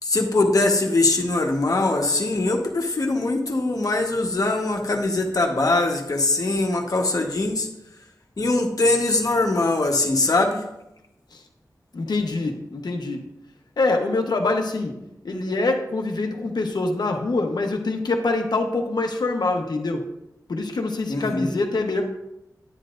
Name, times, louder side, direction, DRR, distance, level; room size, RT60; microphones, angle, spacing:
voice 1, 0.0-7.7 8.4-10.6 21.1-21.5, left 2 dB, 60° left, 2 dB, 1.3 m, -22 dB
voice 2, 11.9-13.2 13.8-14.9 15.2-20.0 20.5-22.0, left 3 dB, 85° left, 3 dB, 1.0 m, -24 dB
9.9 x 9.7 x 2.6 m, 0.88 s
wide cardioid pair, 75°, 7 cm